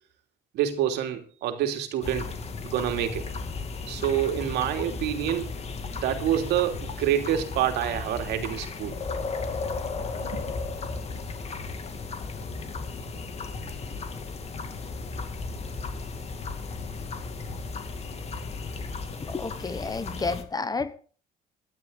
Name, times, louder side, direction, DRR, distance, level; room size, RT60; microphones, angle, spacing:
voice 1, 0.5-2.3 2.6-3.2 3.9-5.6 5.9-8.9 10.2-10.4, right 11 dB, 85° right, 2.8 m, -27 dB
sound 1, 2.0-20.4, left 4 dB, 40° left, 2.5 m, -35 dB
voice 2, 19.2-20.9, left 4 dB, 20° left, 1.2 m, -31 dB
18.5 x 12.0 x 4.0 m
cardioid pair, 110°, 17 cm